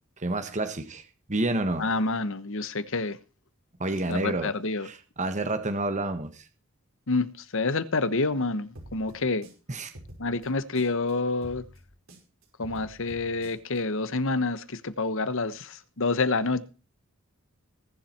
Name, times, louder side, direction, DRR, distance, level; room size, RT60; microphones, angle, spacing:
voice 1, 0.2-1.0 1.3-1.9 3.8-4.5 4.8-6.4 9.7-9.9, right 2 dB, 35° right, 1.5 m, -29 dB
voice 2, 1.8-3.2 4.1-4.9 7.1-9.5 10.2-11.6 12.6-16.6, left 3 dB, 65° left, 1.2 m, -28 dB
sound 1, 8.7-11.1 11.4-13.8, equal, 70° right, 5.3 m, -48 dB
20.5 x 7.6 x 4.5 m
head